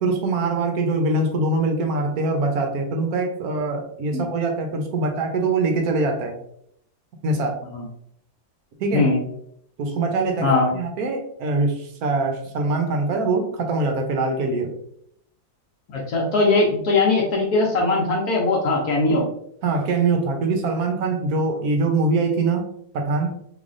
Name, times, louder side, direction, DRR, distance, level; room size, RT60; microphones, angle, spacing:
voice 1, 0.0-6.4 7.2-7.6 8.8-9.1 9.8-10.5 10.7-14.8 19.6-22.6 22.9-23.3, right 3 dB, 65° right, 4 dB, 1.0 m, -23 dB
voice 2, 8.9-9.2 10.4-10.7 15.9-19.3, left 2 dB, 60° left, 0 dB, 1.1 m, -20 dB
3.6 x 3.2 x 2.5 m, 0.70 s
omnidirectional pair, 2.0 m